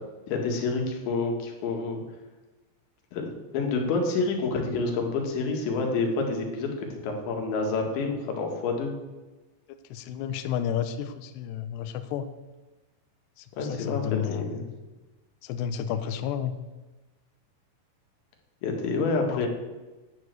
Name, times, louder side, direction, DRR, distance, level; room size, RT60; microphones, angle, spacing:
voice 1, 0.3-2.0 3.1-8.9 13.6-14.6 18.6-19.5, left 3 dB, 70° left, 2 dB, 4.1 m, -28 dB
voice 2, 9.9-12.3 13.4-14.5 15.4-16.5 19.3-19.5, left 9 dB, 85° left, 9 dB, 2.4 m, -31 dB
11.0 x 7.6 x 7.8 m, 1.1 s
omnidirectional pair, 5.7 m